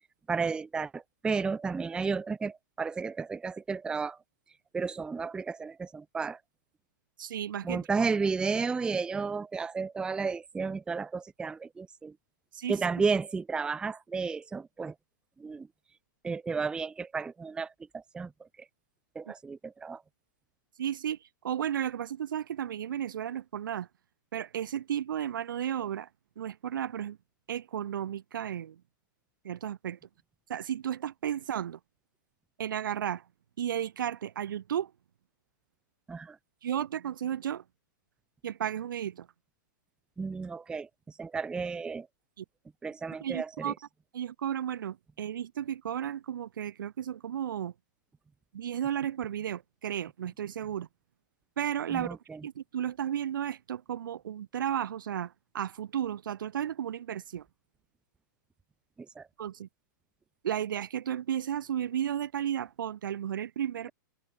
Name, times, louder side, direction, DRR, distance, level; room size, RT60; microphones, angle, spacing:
voice 1, 0.3-4.2 4.7-6.4 7.6-12.1 12.7-14.9 15.4-15.7 16.2-18.3 19.2-20.0 36.1-36.4 40.2-40.9 41.2-42.1 42.8-43.7 51.9-52.4 59.2-59.3, right 4 dB, 10° right, 0.5 m, -32 dB
voice 2, 7.2-7.8 12.5-12.7 19.3-19.4 20.8-21.2 21.4-23.9 24.3-26.1 26.4-27.2 27.5-28.8 29.4-30.0 30.5-31.8 32.6-33.2 33.6-34.9 36.6-37.6 38.4-39.3 42.4-42.5 43.2-43.7 44.1-47.7 48.5-50.9 51.6-52.2 52.4-57.4 59.4-59.7 60.4-63.9, right 10 dB, 80° right, 1.4 m, -33 dB
hypercardioid pair, 135°, 11 cm